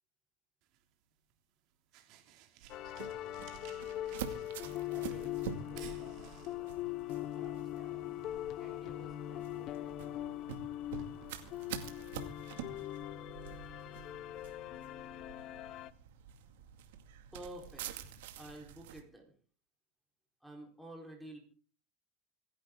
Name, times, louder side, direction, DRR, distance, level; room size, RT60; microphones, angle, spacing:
sound 1, 0.6-14.2, right 11 dB, 55° right, 2.7 m, -62 dB
sound 2, 2.6-19.0, right 9 dB, 90° right, 2.3 m, -48 dB
sound 3, 2.7-15.9, left 14 dB, 45° left, 0.8 m, -41 dB
voice 1, 4.9-7.0 7.3-8.1 8.5-10.7, right 4 dB, 25° right, 3 dB, 3.7 m, -59 dB
voice 2, 17.3-19.3 20.4-21.4, right 1 dB, ahead, -1 dB, 4.1 m, -49 dB
26.5 x 11.0 x 3.8 m, 0.42 s
supercardioid pair, 145°, 0 cm